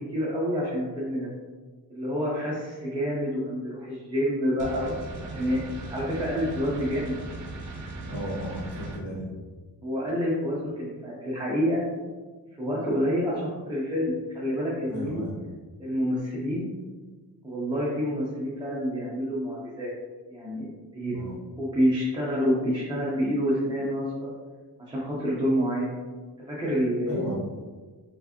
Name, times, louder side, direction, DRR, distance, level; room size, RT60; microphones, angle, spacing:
voice 1, 0.1-1.3 1.9-5.0 5.3-7.2 9.8-11.8 12.6-15.2 15.8-16.7 17.4-19.9 20.3-20.7 20.9-21.2 21.6-24.3 24.8-26.0 26.5-27.2, equal, 10° right, -7 dB, 0.7 m, -28 dB
sound 1, 4.6-9.0, right 2 dB, 45° right, 0.7 m, -38 dB
voice 2, 8.1-9.3 14.9-15.4 21.1-21.3 27.1-27.4, equal, 45° left, -5 dB, 1.4 m, -33 dB
4.6 x 3.3 x 2.9 m, 1.4 s
wide cardioid pair, 170°, 41 cm